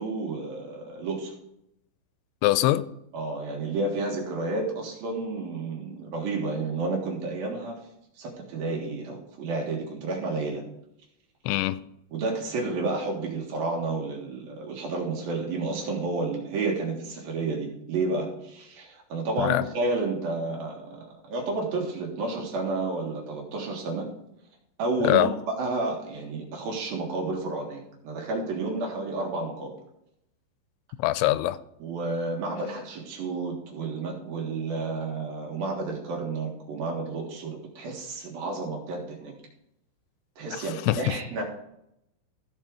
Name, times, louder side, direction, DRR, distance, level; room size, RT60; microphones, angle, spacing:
voice 1, 0.0-1.3 3.1-7.9 8.2-10.6 12.1-24.1 24.8-29.7 31.8-39.3 40.4-41.4, right 3 dB, 60° right, -1 dB, 3.0 m, -31 dB
voice 2, 2.4-2.8 11.5-11.8 19.4-19.7 25.0-25.3 31.0-31.6 40.5-41.1, left 15 dB, 85° left, 14 dB, 2.9 m, -23 dB
14.5 x 5.5 x 4.8 m, 0.80 s
omnidirectional pair, 5.4 m